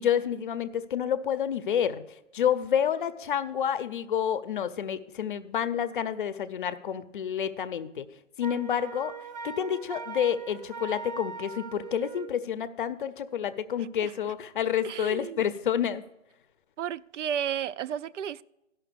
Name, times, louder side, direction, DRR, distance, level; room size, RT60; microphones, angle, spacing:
voice 1, 0.0-2.0 2.3-8.1 8.4-9.1 9.4-16.0, left 9 dB, 45° left, 0.6 m, -29 dB
Wind instrument woodwind instrument, 8.4-12.3, right 5 dB, 35° right, 0.7 m, -40 dB
voice 2, 14.8-15.4 16.8-18.4, right 9 dB, 75° right, 0.5 m, -33 dB
12.5 x 5.8 x 6.8 m
hypercardioid pair, 165°, 36 cm